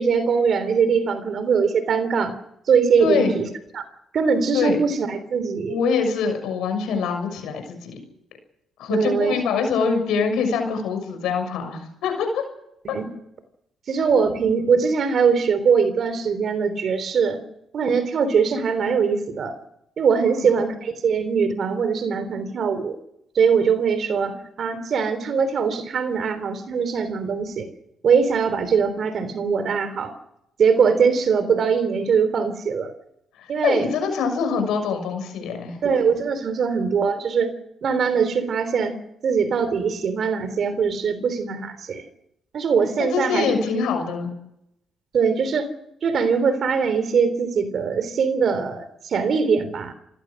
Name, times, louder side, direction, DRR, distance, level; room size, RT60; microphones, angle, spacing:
voice 1, 0.0-2.3 2.7-3.5 3.7-3.8 4.1-5.8 8.9-9.4 12.9-13.1 13.9-17.4 17.7-19.6 20.0-23.0 23.4-27.7 28.0-30.1 30.6-32.9 33.5-33.9 35.8-37.5 37.8-39.0 39.2-42.0 42.5-43.5 45.1-45.7 46.0-49.9, right 6 dB, 60° right, 12 dB, 3.4 m, -21 dB
voice 2, 3.0-3.3 4.5-4.8 5.7-7.9 8.8-12.5 12.9-13.0 20.2-20.5 33.4-35.8 43.0-44.3, left 5 dB, 85° left, 6 dB, 6.6 m, -24 dB
28.0 x 16.5 x 6.5 m, 0.79 s
cardioid pair, 90°, 0 cm